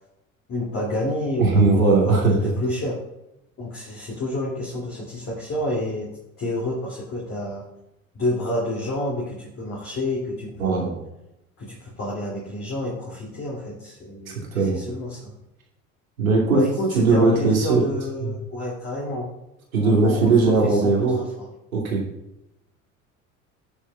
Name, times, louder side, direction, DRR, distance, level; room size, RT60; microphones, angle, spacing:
voice 1, 0.5-3.0 3.6-6.1 6.4-7.7 8.1-10.9 11.6-15.4 16.5-19.3 19.8-21.5, left 1 dB, 30° left, -5 dB, 2.5 m, -29 dB
voice 2, 1.4-2.4 10.6-11.0 14.5-14.8 16.2-16.6 16.9-17.8 18.2-18.3 19.7-21.2 21.7-22.0, right 3 dB, 75° right, -2 dB, 2.6 m, -19 dB
19.5 x 7.3 x 2.3 m, 0.90 s
figure-of-eight pair, 65°, 42 cm